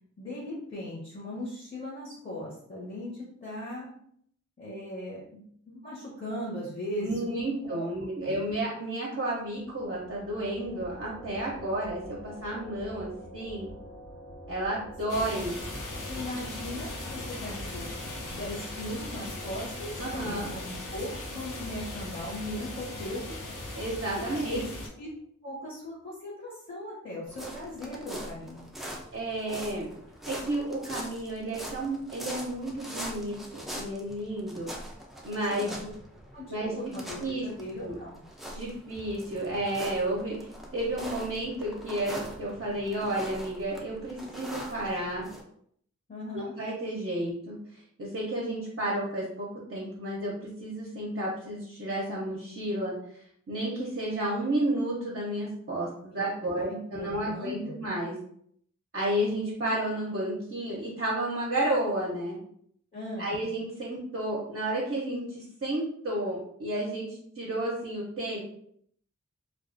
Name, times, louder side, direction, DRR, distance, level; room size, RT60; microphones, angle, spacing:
voice 1, 0.2-3.9 4.6-7.9 8.2-8.4 15.1-15.3 16.1-18.0 18.3-23.4 24.2-24.7 25.0-25.1 25.4-28.7 35.5-35.9 36.3-38.2 46.1-46.5 56.1-57.8 62.9-63.4, left 1 dB, 35° left, -5 dB, 0.9 m, -38 dB
voice 2, 7.0-13.7 14.5-15.6 20.0-20.5 23.7-24.7 29.1-29.9 30.3-34.7 35.2-35.7 36.5-36.7 37.2-37.4 37.8-38.0 38.5-45.3 46.3-52.9 53.5-58.1 58.9-62.4 63.2-68.4, right 1 dB, 50° right, -5 dB, 0.6 m, -32 dB
sound 1, 9.4-25.2, equal, 65° left, 1.3 m, -46 dB
sound 2, 15.1-24.9, left 2 dB, 85° left, 0.6 m, -39 dB
sound 3, 27.3-45.4, equal, ahead, 0.5 m, -42 dB
2.3 x 2.3 x 2.5 m, 0.66 s
wide cardioid pair, 45°, 30 cm